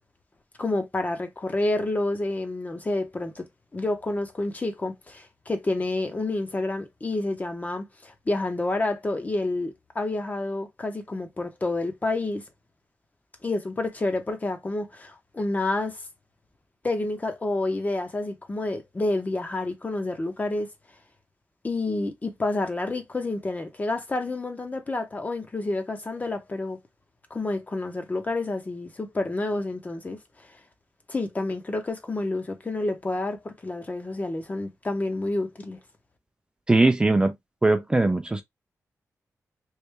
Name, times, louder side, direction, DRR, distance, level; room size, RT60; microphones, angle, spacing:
voice 1, 0.6-3.4 3.7-12.4 13.4-16.0 16.8-20.7 21.6-26.8 27.3-30.5 31.1-35.8, left 2 dB, 25° left, 0.8 m, -29 dB
voice 2, 36.7-37.3 37.6-38.4, right 2 dB, 15° right, 0.4 m, -20 dB
3.2 x 2.6 x 3.3 m
wide cardioid pair, 115°, 6 cm